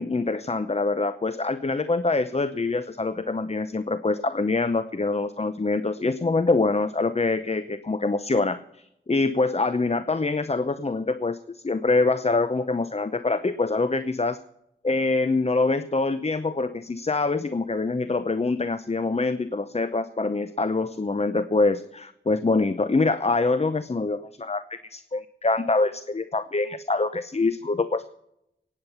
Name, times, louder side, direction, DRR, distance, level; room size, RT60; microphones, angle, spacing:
voice 1, 0.0-14.4 14.8-28.0, left 3 dB, 30° left, 12 dB, 0.7 m, -25 dB
18.0 x 8.8 x 5.6 m, 0.80 s
cardioid pair, 45°, 21 cm